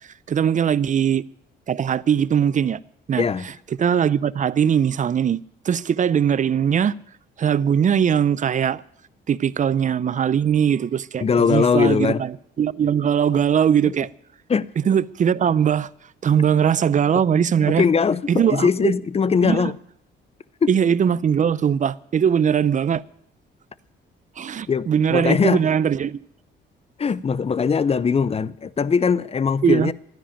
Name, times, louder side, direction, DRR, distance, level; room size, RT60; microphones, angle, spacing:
voice 1, 0.3-1.2 1.7-2.8 3.1-3.3 3.8-6.9 7.4-8.8 9.3-14.1 14.8-15.9 16.2-17.9 18.3-18.9 19.4-19.7 20.7-23.0 24.4-26.2 29.6-29.9, right 8 dB, 40° right, 0.5 m, -20 dB
voice 2, 3.2-3.5 11.2-12.2 14.5-14.7 17.1-17.2 17.8-19.8 20.6-20.7 24.7-25.6 27.0-29.9, left 6 dB, 30° left, 0.6 m, -20 dB
13.0 x 10.0 x 8.7 m
cardioid pair, 90°, 20 cm